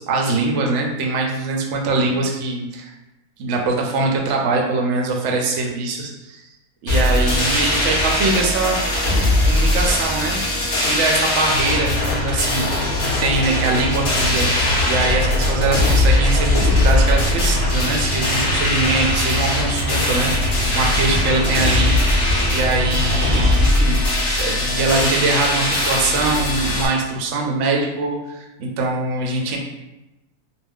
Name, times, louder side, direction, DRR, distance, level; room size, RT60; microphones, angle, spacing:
voice 1, 0.0-2.9 3.4-6.4 6.8-9.1 9.4-10.4 10.8-14.5 14.9-21.9 22.5-24.0 24.3-29.6, right 3 dB, 65° right, 0 dB, 0.7 m, -22 dB
sound 1, 6.9-26.9, left 1 dB, 45° left, 0.7 m, -20 dB
sound 2, 11.6-23.5, left 1 dB, 75° left, 1.0 m, -26 dB
2.5 x 2.1 x 3.5 m, 1.0 s
omnidirectional pair, 1.6 m